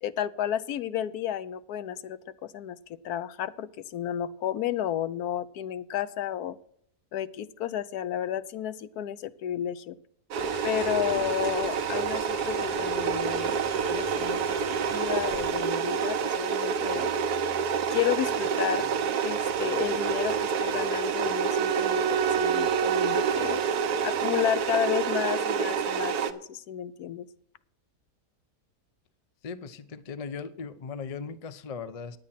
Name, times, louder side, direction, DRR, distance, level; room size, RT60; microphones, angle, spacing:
voice 1, 0.0-2.8 3.0-6.6 7.1-10.0 10.6-13.6 13.9-14.6 14.9-17.1 17.9-18.9 19.2-23.6 24.0-27.2, left 10 dB, 80° left, 14 dB, 1.2 m, -32 dB
sound 1, 10.3-26.3, right 6 dB, 85° right, 1.4 m, -28 dB
sound 2, 10.4-15.6, left 2 dB, 35° left, 1.0 m, -44 dB
Bowed string instrument, 21.2-24.7, right 8 dB, 65° right, 1.2 m, -30 dB
voice 2, 29.4-32.2, left 5 dB, 55° left, 13 dB, 0.4 m, -38 dB
9.6 x 9.4 x 5.7 m, 0.67 s
omnidirectional pair, 1.6 m